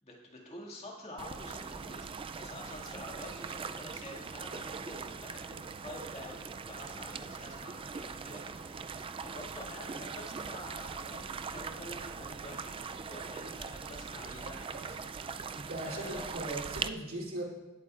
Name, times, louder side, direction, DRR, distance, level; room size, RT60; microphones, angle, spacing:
voice 1, 0.0-2.1 2.4-15.6 15.8-16.4, left 1 dB, 30° left, -2 dB, 2.1 m, -48 dB
sound 1, 1.2-16.9, right 5 dB, 25° right, 0.3 m, -41 dB
voice 2, 15.5-17.4, right 1 dB, 80° right, -3 dB, 3.0 m, -39 dB
18.5 x 8.2 x 2.5 m, 1.1 s
head